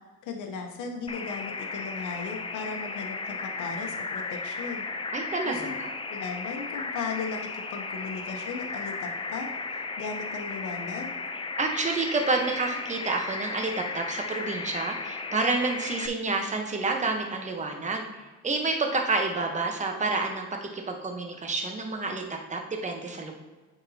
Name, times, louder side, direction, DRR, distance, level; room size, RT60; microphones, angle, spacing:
voice 1, 0.2-4.8 5.4-11.1, left 5 dB, 85° left, 3 dB, 0.9 m, -37 dB
sound 1, 1.1-16.1, left 4 dB, 20° left, 0.5 m, -35 dB
voice 2, 5.1-5.9 11.6-18.1 18.4-22.2 22.5-23.3, right 3 dB, 25° right, 3 dB, 1.0 m, -29 dB
9.3 x 4.0 x 2.8 m, 1.3 s
cardioid pair, 90°, 30 cm